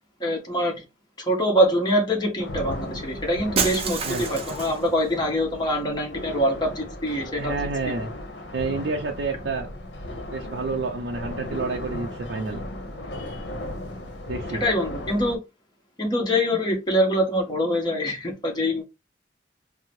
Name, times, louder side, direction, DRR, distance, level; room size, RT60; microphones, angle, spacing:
voice 1, 0.2-0.7 1.2-7.7 14.5-15.4 16.0-18.8, equal, 25° left, 1.0 m, -24 dB
sound 1, 2.4-15.4, left 1 dB, 75° left, 0.8 m, -36 dB
Shatter, 3.6-4.9, right 5 dB, 35° right, 0.5 m, -27 dB
voice 2, 7.4-8.1 8.5-9.7 10.3-12.6 14.3-14.6, right 3 dB, 80° right, 0.5 m, -29 dB
3.6 x 2.0 x 2.9 m
head